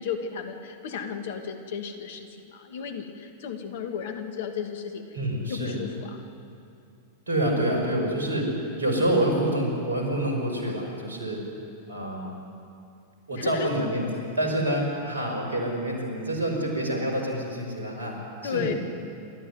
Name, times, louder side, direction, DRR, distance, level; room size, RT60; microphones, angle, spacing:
voice 1, 0.0-5.0 5.4-6.2 13.3-13.7 18.4-18.7, left 7 dB, 60° left, 6 dB, 2.4 m, -34 dB
voice 2, 5.1-5.8 7.3-8.5 8.8-11.4 11.9-12.4 13.3-18.2 18.4-18.8, right 1 dB, 80° right, 1 dB, 5.6 m, -27 dB
28.5 x 13.5 x 9.5 m, 2.6 s
figure-of-eight pair, 95°, 0 cm